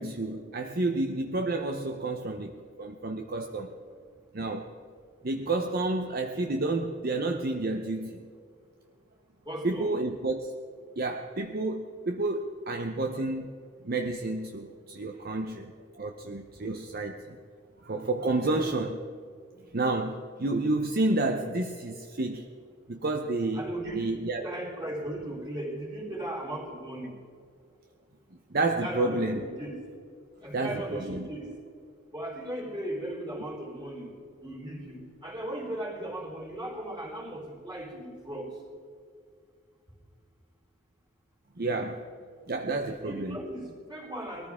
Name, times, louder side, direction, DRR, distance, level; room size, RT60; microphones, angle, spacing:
voice 1, 0.0-3.8 4.3-4.7 5.2-8.2 9.6-10.5 11.0-13.5 13.8-17.4 17.8-19.0 19.7-22.5 22.9-23.7 23.9-24.5 28.5-29.4 30.5-31.3 41.6-42.0 42.5-43.4, right 2 dB, 50° right, 4 dB, 0.8 m, -30 dB
voice 2, 9.4-10.0 23.5-24.1 24.4-27.1 28.8-29.7 30.4-31.5 32.1-34.1 34.4-38.5 43.0-44.5, right 1 dB, 20° right, -3 dB, 4.2 m, -37 dB
21.0 x 14.0 x 3.7 m, 2.3 s
head